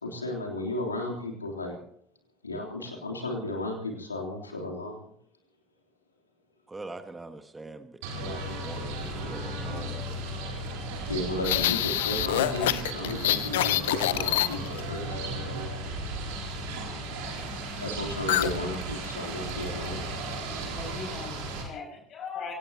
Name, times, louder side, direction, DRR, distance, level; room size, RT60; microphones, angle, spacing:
voice 1, 0.0-1.7 2.4-5.1 11.1-15.6 17.2-17.4 17.8-20.2, left 2 dB, 85° left, 0 dB, 3.4 m, -34 dB
voice 2, 6.7-10.2 10.6-10.8, right 2 dB, 15° right, 8 dB, 1.5 m, -43 dB
sound 1, 8.0-21.6, right 2 dB, 65° right, 4.0 m, -35 dB
sound 2, 11.4-14.9 18.3-18.6 18.8-19.1 19.5-19.9, left 14 dB, 70° left, 0.6 m, -26 dB
voice 3, 20.5-22.5, left 5 dB, 45° left, 1 dB, 6.5 m, -40 dB
24.5 x 18.0 x 2.9 m, 0.65 s
figure-of-eight pair, 60°, 0 cm